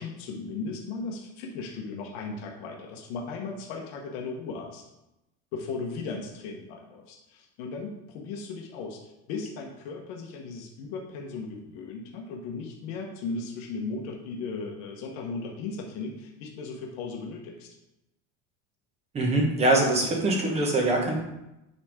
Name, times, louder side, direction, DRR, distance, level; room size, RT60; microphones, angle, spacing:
voice 1, 0.0-4.8 5.5-17.8, left 4 dB, 55° left, 0 dB, 1.3 m, -36 dB
voice 2, 19.1-21.2, right 2 dB, 20° right, 1 dB, 1.1 m, -23 dB
9.5 x 3.6 x 5.0 m, 0.92 s
cardioid pair, 170°, 34 cm